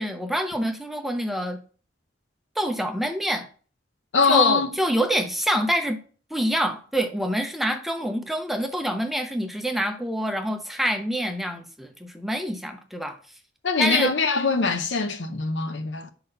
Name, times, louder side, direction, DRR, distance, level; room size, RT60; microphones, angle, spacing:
voice 1, 0.0-1.6 2.6-3.5 4.3-6.0 6.3-13.2 13.8-14.1, right 1 dB, ahead, 0.6 m, -26 dB
voice 2, 4.1-4.7 13.6-16.1, left 4 dB, 80° left, 0.8 m, -22 dB
5.5 x 4.0 x 5.4 m
head